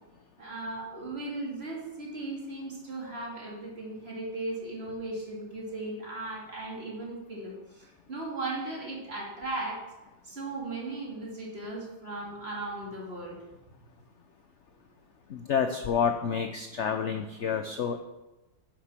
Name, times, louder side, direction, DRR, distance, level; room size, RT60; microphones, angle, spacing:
voice 1, 0.4-9.8 10.2-13.4, right 2 dB, 30° right, -4 dB, 2.9 m, -37 dB
voice 2, 15.3-18.0, left 7 dB, 65° left, 6 dB, 0.7 m, -29 dB
11.0 x 6.7 x 5.8 m, 1.0 s
omnidirectional pair, 2.0 m